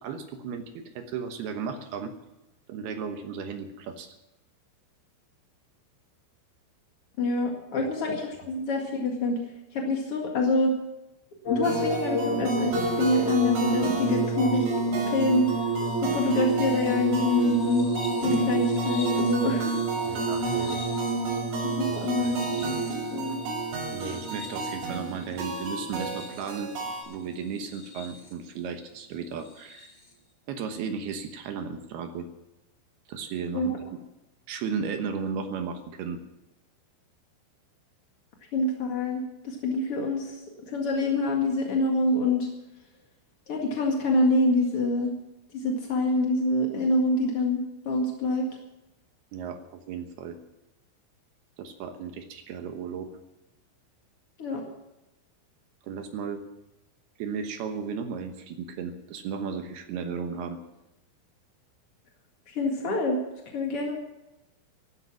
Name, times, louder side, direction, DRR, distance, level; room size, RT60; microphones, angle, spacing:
voice 1, 0.0-2.1 2.7-4.1 7.8-7.9 20.0-20.8 21.2-21.4 22.2-22.3 23.9-26.7 27.1-29.9 30.5-32.3 33.1-33.7 34.5-36.2 49.3-50.4 51.6-53.1 55.8-56.4 57.2-60.6, right 6 dB, 75° right, 6 dB, 2.5 m, -35 dB
voice 2, 7.2-9.4 9.7-10.7 11.5-14.7 15.0-15.6 16.0-17.9 18.2-19.8 20.1-20.2 21.6-22.8 23.1-23.4 33.5-33.8 38.5-42.5 43.5-45.1 45.5-48.5 54.4-54.6 62.5-63.2 63.5-64.0, left 2 dB, 65° left, 0 dB, 1.4 m, -26 dB
sound 1, 11.4-26.7 27.6-28.3 29.7-29.8, right 2 dB, 35° left, 1.9 m, -29 dB
sound 2, 11.6-27.0, right 3 dB, 90° right, 9.2 m, -35 dB
16.5 x 12.0 x 6.1 m, 0.94 s
omnidirectional pair, 5.9 m